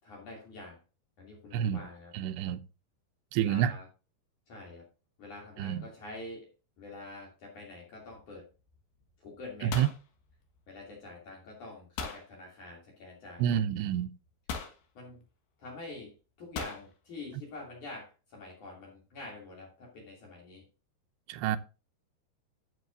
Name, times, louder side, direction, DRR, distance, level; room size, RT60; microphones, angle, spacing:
voice 1, 0.0-0.8 1.2-2.1 3.4-3.9 4.5-4.9 5.2-6.5 6.8-8.5 9.2-9.8 10.7-13.6 15.0-15.2 15.6-20.6, left 2 dB, 50° left, 4.0 m, -46 dB
voice 2, 1.5-1.8 2.1-2.6 3.3-3.7 5.6-5.8 9.6-9.9 13.4-14.1 21.3-21.6, right 10 dB, 85° right, 2.8 m, -28 dB
sound 1, 8.1-8.4 8.7-9.1 9.4-10.9 12.0-12.3 13.4-13.5 14.5-14.8 16.6-16.9, left 5 dB, 85° left, 3.6 m, -39 dB
12.5 x 7.5 x 2.7 m
omnidirectional pair, 4.9 m